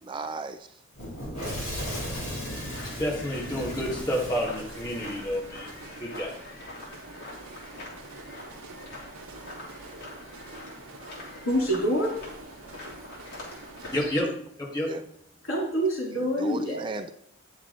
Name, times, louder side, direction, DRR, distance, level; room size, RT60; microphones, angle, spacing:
voice 1, 0.0-0.8 13.8-13.9 14.2-14.4 14.8-15.0 16.4-17.1, right 3 dB, 25° right, 9 dB, 0.3 m, -36 dB
Fire / Explosion, 1.0-5.8, equal, 35° left, 3.7 m, -36 dB
sound 1, 1.5-14.2, left 2 dB, 50° left, 3.2 m, -45 dB
sound 2, 1.9-14.1, right 2 dB, 85° right, 0.9 m, -46 dB
voice 2, 3.0-5.7 6.0-6.4 13.9-14.3 14.7-14.9, equal, 20° left, -4 dB, 1.8 m, -29 dB
voice 3, 11.4-12.1 15.4-16.8, equal, 70° left, -2 dB, 3.6 m, -26 dB
9.2 x 7.3 x 3.9 m, 0.70 s
head